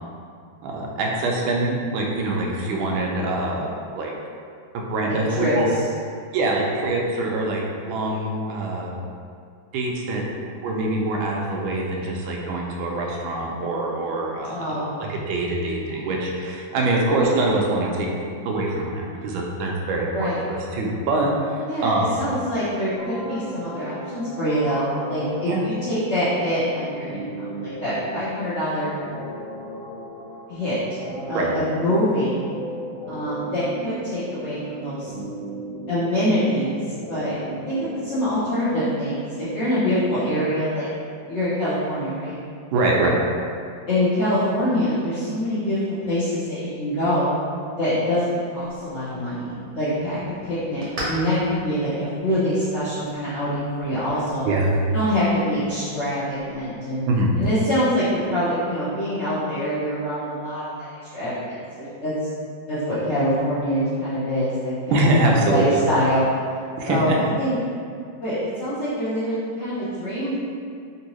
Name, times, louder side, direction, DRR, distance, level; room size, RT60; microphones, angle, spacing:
voice 1, 0.6-3.7 3.9-4.1 4.7-5.7 6.3-8.9 9.7-10.2 10.6-14.8 15.1-18.1 18.4-22.2 25.5-25.6 31.3-31.5 42.7-43.2 54.4-54.7 57.1-57.3 64.9-65.8 66.8-67.2, right 2 dB, 85° right, -1 dB, 1.4 m, -24 dB
voice 2, 5.1-5.5 14.4-15.0 20.1-20.4 21.7-29.0 30.5-30.8 31.3-32.5 33.1-35.1 35.9-37.3 37.7-40.9 41.3-42.4 43.9-47.3 47.7-54.5 54.9-57.0 57.4-60.9 61.1-62.1 62.7-66.3 66.9-67.6 68.2-70.4, equal, 55° left, -13 dB, 0.7 m, -25 dB
sound 1, 23.0-39.0, right 1 dB, 75° left, 1.3 m, -36 dB
sound 2, 48.6-57.6, equal, 50° right, 0.9 m, -40 dB
3.5 x 2.7 x 2.9 m, 2.3 s
omnidirectional pair, 2.1 m